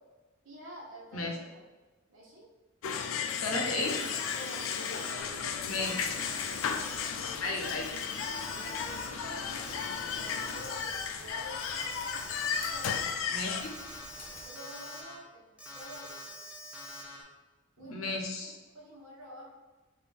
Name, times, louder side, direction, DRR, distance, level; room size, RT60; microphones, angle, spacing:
voice 1, 0.4-1.6 2.1-2.5 4.3-4.7 5.0-7.0 8.5-12.3 12.7-13.1 14.4-16.2 17.8-18.0 18.4-19.6, left 1 dB, 70° right, -3 dB, 1.1 m, -49 dB
sound 1, 2.8-13.6, left 7 dB, 75° left, 0.3 m, -35 dB
voice 2, 3.4-4.0 5.6-5.9 7.4-7.9 13.3-13.7 17.8-18.6, left 2 dB, 90° left, 2 dB, 0.7 m, -33 dB
Alarm, 3.8-5.3 5.7-11.0 11.3-13.0 13.5-15.1 15.6-17.2, left 1 dB, 5° right, 0.7 m, -45 dB
sound 2, 5.2-14.4, left 2 dB, 45° left, 0.9 m, -50 dB
4.2 x 2.6 x 3.5 m, 1.2 s
head